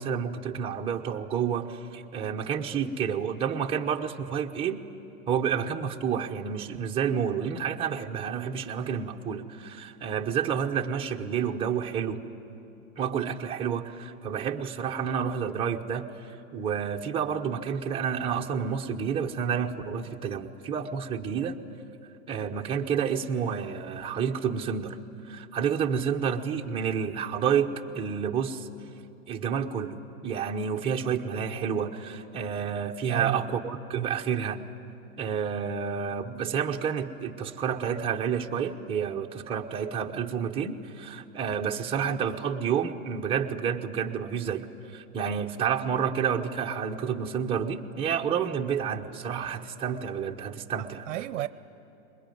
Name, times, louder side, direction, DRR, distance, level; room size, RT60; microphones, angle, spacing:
voice 1, 0.0-4.8 5.3-12.2 13.0-16.1 16.5-21.6 22.3-25.0 25.2-27.7 27.9-28.7 29.3-30.0 30.2-34.6 35.2-51.0, right 7 dB, 15° right, 0.9 m, -29 dB
voice 2, 33.1-33.4 33.9-34.2 50.8-51.5, right 15 dB, 60° right, 0.7 m, -32 dB
22.0 x 21.5 x 9.3 m
hypercardioid pair, 140°, 43 cm